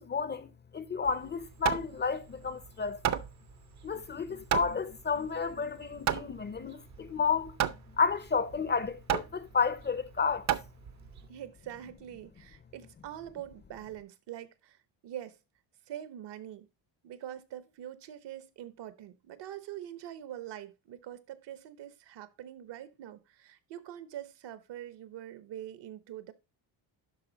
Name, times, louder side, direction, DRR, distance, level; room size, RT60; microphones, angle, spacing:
voice 1, 0.0-3.2 3.8-7.6 8.0-10.5, left 5 dB, 25° left, 0.5 m, -31 dB
Hammer, 1.1-11.3, right 10 dB, 40° right, 0.6 m, -34 dB
voice 2, 11.3-14.8 15.0-15.4 15.9-16.7 17.0-26.3, right 11 dB, 65° right, 1.1 m, -44 dB
11.5 x 4.1 x 3.9 m
cardioid pair, 140°, 45 cm